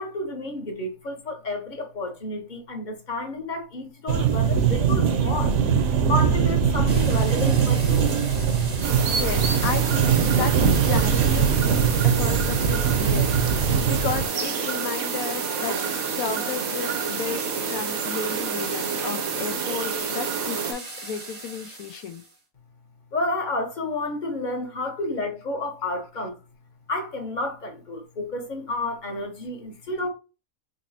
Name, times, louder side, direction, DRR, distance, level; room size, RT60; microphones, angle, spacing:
voice 1, 0.0-5.6 6.1-8.1 23.1-26.4 26.9-30.1, left 2 dB, 35° left, 1.0 m, -30 dB
sound 1, 4.1-14.3, right 7 dB, 65° right, 0.9 m, -21 dB
sound 2, 6.9-22.3, right 3 dB, 30° right, 0.6 m, -38 dB
sound 3, 8.8-20.7, right 6 dB, 80° right, 1.1 m, -29 dB
voice 2, 9.2-10.6 10.8-22.2, left 7 dB, 80° left, 1.1 m, -33 dB
4.0 x 3.0 x 2.6 m
omnidirectional pair, 1.5 m